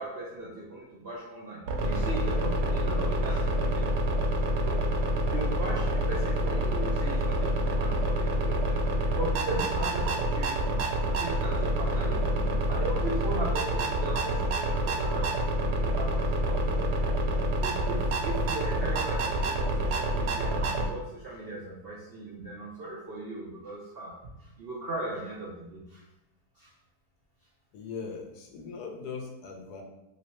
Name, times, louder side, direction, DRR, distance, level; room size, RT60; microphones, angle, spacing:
voice 1, 0.0-3.9 4.5-10.8 11.1-16.9 17.6-26.0 26.6-26.7, right 1 dB, 65° right, -5 dB, 0.5 m, -38 dB
sound 1, 1.7-20.9, right 1 dB, 85° right, 1.1 m, -27 dB
voice 2, 27.7-29.8, left 5 dB, 85° left, 2 dB, 1.2 m, -40 dB
3.1 x 3.0 x 2.9 m, 0.92 s
omnidirectional pair, 1.7 m